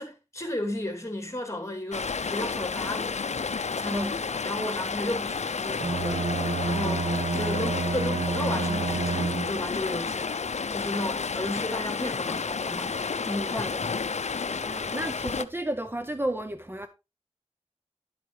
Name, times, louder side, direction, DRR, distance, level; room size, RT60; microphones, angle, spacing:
voice 1, 0.0-3.2 3.8-10.3 10.7-12.9 13.2-13.9, left 1 dB, 25° left, 2.7 m, -34 dB
Stream, 1.9-15.5, left 5 dB, 90° left, 0.5 m, -31 dB
Bowed string instrument, 5.7-9.8, right 3 dB, 80° right, 1.0 m, -29 dB
voice 2, 14.4-16.9, right 1 dB, 20° right, 0.7 m, -32 dB
10.5 x 7.8 x 3.2 m
wide cardioid pair, 50°, 11 cm